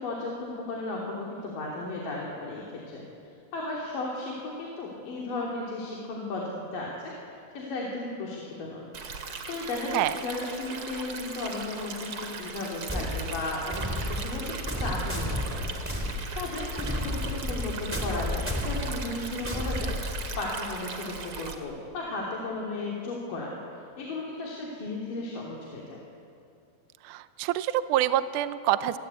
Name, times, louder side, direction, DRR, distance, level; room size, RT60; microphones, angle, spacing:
voice 1, 0.0-3.0 3.5-7.1 7.5-8.8 9.5-15.8 16.4-23.5 24.0-26.0, left 2 dB, 70° left, -3 dB, 4.6 m, -35 dB
Stream, 8.9-21.5, right 5 dB, 45° right, 2.5 m, -39 dB
sound 1, 12.9-20.5, left 1 dB, 5° right, 3.1 m, -32 dB
voice 2, 27.1-29.0, right 13 dB, 75° right, 12 dB, 2.1 m, -26 dB
29.5 x 21.0 x 8.3 m, 2.5 s
omnidirectional pair, 4.1 m